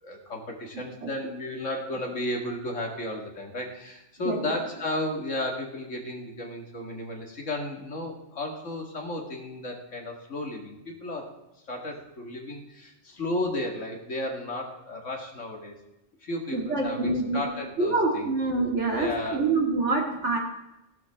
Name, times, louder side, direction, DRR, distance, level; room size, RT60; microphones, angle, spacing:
voice 1, 0.0-11.3 11.7-15.8 16.2-18.3 19.0-19.4, left 1 dB, 85° left, 1 dB, 2.4 m, -33 dB
voice 2, 0.7-1.3 4.2-4.6 16.5-17.4 17.8-20.4, right 3 dB, 70° right, 0 dB, 2.6 m, -26 dB
16.0 x 11.5 x 3.6 m, 0.94 s
omnidirectional pair, 1.2 m